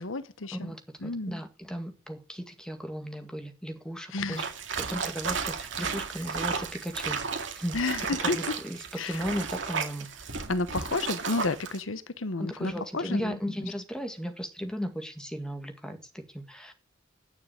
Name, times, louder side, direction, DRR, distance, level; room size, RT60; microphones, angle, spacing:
voice 1, 0.0-0.7 1.0-1.3 4.1-4.5 7.7-8.4 9.0-9.2 10.5-13.4, left 3 dB, 85° left, 1.0 m, -31 dB
voice 2, 0.5-4.4 4.8-7.2 7.5-7.7 8.2-8.8 9.0-10.1 12.4-16.7, equal, 5° left, 1.9 m, -36 dB
sound 1, 4.3-11.8, right 5 dB, 70° right, 2.1 m, -33 dB
10.0 x 6.7 x 8.8 m
head